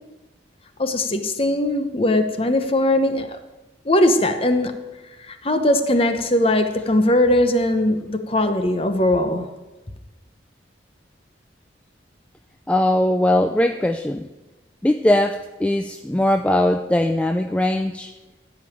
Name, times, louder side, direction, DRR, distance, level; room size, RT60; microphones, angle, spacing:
voice 1, 0.8-3.4 3.8-4.7 5.3-9.5, left 1 dB, 30° left, 0.9 m, -20 dB
voice 2, 12.7-14.3 14.8-18.1, left 1 dB, 5° left, 0.3 m, -20 dB
13.5 x 5.2 x 8.7 m
head